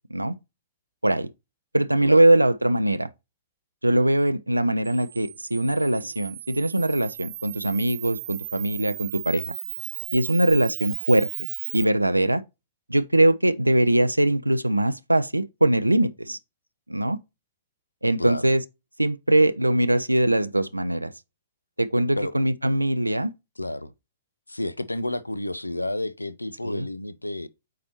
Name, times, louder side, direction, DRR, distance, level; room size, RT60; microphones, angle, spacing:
voice 1, 1.7-3.1 3.8-9.5 10.1-12.4 12.9-16.4 16.9-17.2 18.0-18.6 19.0-21.1 21.8-23.3 26.6-26.9, right 1 dB, 90° right, 0.4 m, -22 dB
Camera, 4.8-11.8, right 14 dB, 45° right, 0.7 m, -36 dB
voice 2, 18.2-18.5 22.2-22.4 23.6-23.9 24.5-27.5, left 1 dB, 85° left, 0.5 m, -30 dB
8.4 x 4.2 x 2.9 m
figure-of-eight pair, 110°, 0 cm